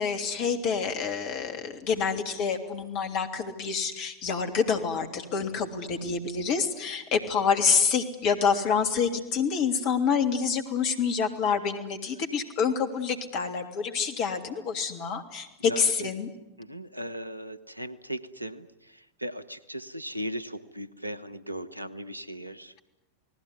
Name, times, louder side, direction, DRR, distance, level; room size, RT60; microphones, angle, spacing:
voice 1, 0.0-16.3, left 6 dB, 40° left, 6 dB, 3.2 m, -27 dB
voice 2, 15.6-16.1 16.6-22.7, equal, 85° right, 17 dB, 1.1 m, -38 dB
29.0 x 19.0 x 9.7 m, 0.96 s
figure-of-eight pair, 90°, 0 cm